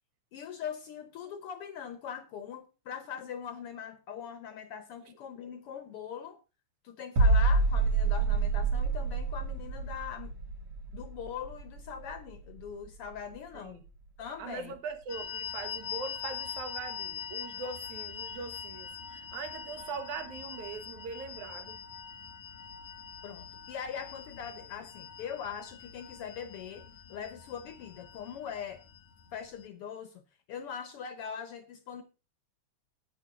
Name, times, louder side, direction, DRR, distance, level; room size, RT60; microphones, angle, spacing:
voice 1, 0.3-6.4 6.8-10.3 10.9-13.8 14.2-14.7 23.2-28.8 29.3-30.2 30.5-32.0, left 8 dB, 65° left, 1.5 m, -41 dB
sound 1, 7.2-12.9 13.1-13.4, right 3 dB, 60° right, 3.6 m, -28 dB
voice 2, 14.4-21.8, right 5 dB, 80° right, 2.7 m, -41 dB
sound 2, 15.1-29.7, left 8 dB, 85° left, 2.5 m, -43 dB
9.0 x 9.0 x 4.9 m
omnidirectional pair, 3.3 m